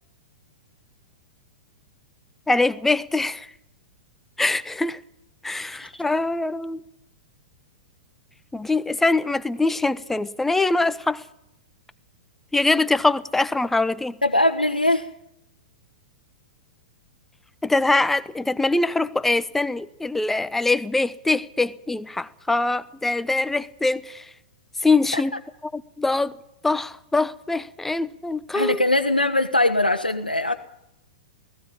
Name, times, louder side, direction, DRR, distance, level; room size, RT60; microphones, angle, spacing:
voice 1, 2.5-3.5 4.4-5.0 5.4-6.8 8.5-11.2 12.5-14.1 17.6-24.2 24.8-25.3 25.7-26.3 26.6-28.8, left 2 dB, 5° left, 0.8 m, -23 dB
voice 2, 14.2-15.1 25.1-25.2 28.5-30.6, left 1 dB, 85° left, 1.1 m, -21 dB
19.0 x 15.5 x 8.8 m
figure-of-eight pair, 105°, 5 cm